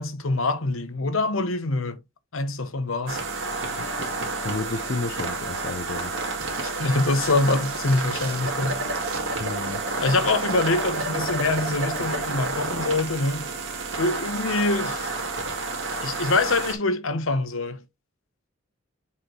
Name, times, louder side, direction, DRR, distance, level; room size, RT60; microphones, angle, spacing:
voice 1, 0.0-2.0 2.3-3.2 6.6-8.8 10.0-13.5 14.0-15.1 16.0-17.8, left 2 dB, 75° left, 1.0 m, -25 dB
sound 1, 3.1-16.7, right 3 dB, 70° right, 2.1 m, -30 dB
voice 2, 3.8-4.1 4.4-6.1 9.4-9.8, left 3 dB, 45° left, 0.5 m, -32 dB
sound 2, 6.4-10.8 11.0-11.1, right 6 dB, 85° right, 1.7 m, -43 dB
7.2 x 4.4 x 3.1 m
head